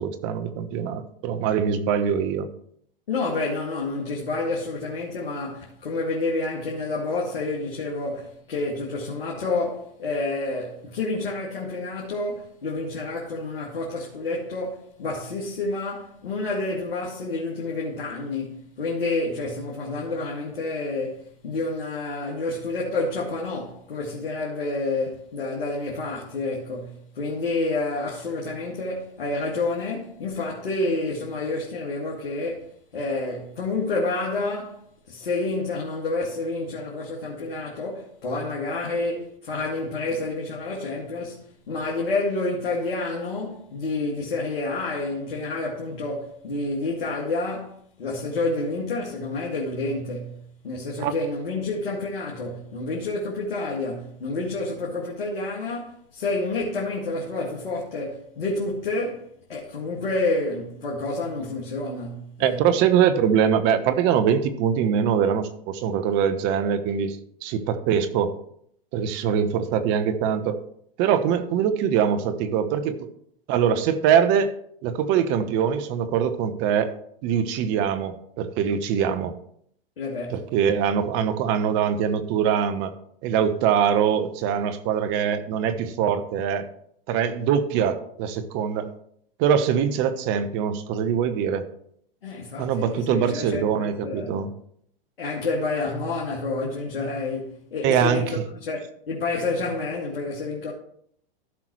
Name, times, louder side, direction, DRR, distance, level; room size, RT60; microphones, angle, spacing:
voice 1, 0.0-2.5 51.0-51.1 62.4-67.2 67.4-68.4 68.9-70.6 71.0-73.0 73.5-74.5 74.8-76.9 77.2-79.4 80.3-82.9 83.2-86.7 87.1-88.9 89.4-91.6 92.6-94.5 97.8-98.2, right 8 dB, 40° right, 1.1 m, -23 dB
voice 2, 3.1-62.7 80.0-80.5 92.2-94.4 95.2-100.7, left 2 dB, 80° left, 2.2 m, -29 dB
15.0 x 5.9 x 3.1 m
hypercardioid pair, 115°, 29 cm